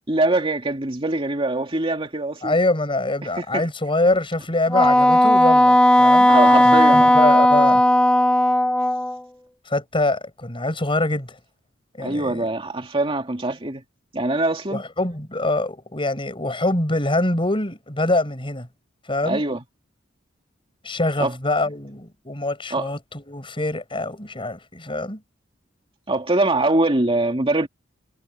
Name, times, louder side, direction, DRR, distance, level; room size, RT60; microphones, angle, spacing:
voice 1, 0.1-2.6 3.2-3.6 6.3-7.2 12.0-13.8 14.1-14.8 19.2-19.6 21.2-21.3 22.7-22.9 26.1-27.7, right 2 dB, 30° right, 2.4 m, -23 dB
voice 2, 2.4-6.3 6.6-7.8 9.7-11.3 12.0-12.4 14.7-18.7 19.1-19.4 20.8-25.2, left 2 dB, 30° left, 6.2 m, -24 dB
Wind instrument woodwind instrument, 4.7-9.2, left 1 dB, 5° left, 1.4 m, -15 dB
head